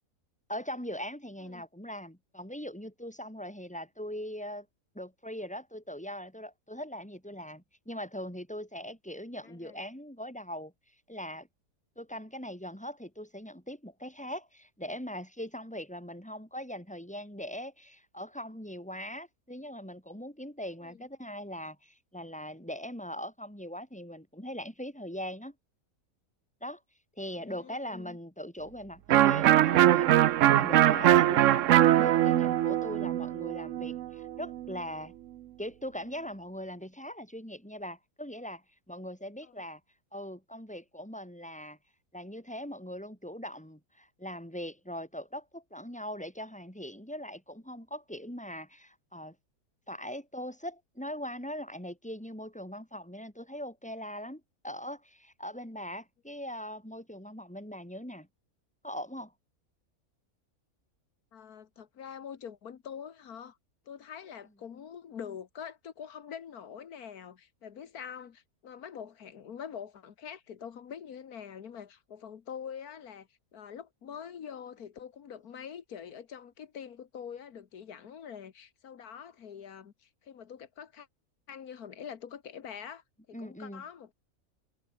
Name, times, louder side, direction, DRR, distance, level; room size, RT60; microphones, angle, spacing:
voice 1, 0.5-4.7 4.9-10.7 11.1-11.5 12.0-25.5 26.6-26.8 27.2-31.6 32.0-35.1 35.6-39.8 40.1-41.8 42.1-49.4 49.9-58.3 58.8-59.3 83.3-83.8, equal, 5° left, 5.6 m, -41 dB
voice 2, 9.4-9.8 20.8-21.1 27.4-28.2 39.4-39.6 61.3-63.6 63.9-81.1 81.5-83.0 83.3-84.1, left 8 dB, 85° left, 1.8 m, -45 dB
Electric guitar, 29.1-34.7, right 13 dB, 65° right, 0.9 m, -22 dB
omnidirectional pair, 1.5 m